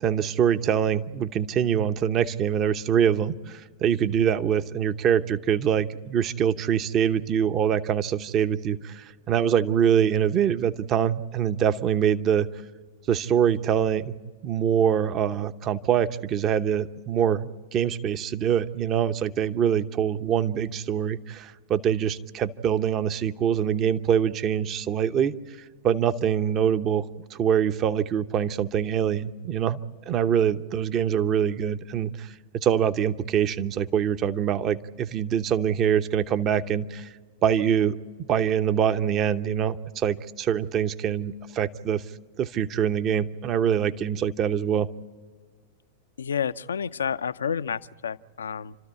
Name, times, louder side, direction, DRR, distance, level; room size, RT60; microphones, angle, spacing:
voice 1, 0.0-12.5 13.1-14.1 14.4-25.3 25.8-29.8 30.1-37.1 37.4-38.0 38.3-42.0 42.4-44.9, right 8 dB, 35° right, 11 dB, 0.9 m, -24 dB
voice 2, 46.2-48.8, left 7 dB, 80° left, 14 dB, 0.5 m, -30 dB
29.0 x 13.5 x 8.4 m, 1.5 s
hypercardioid pair, 100°, 0 cm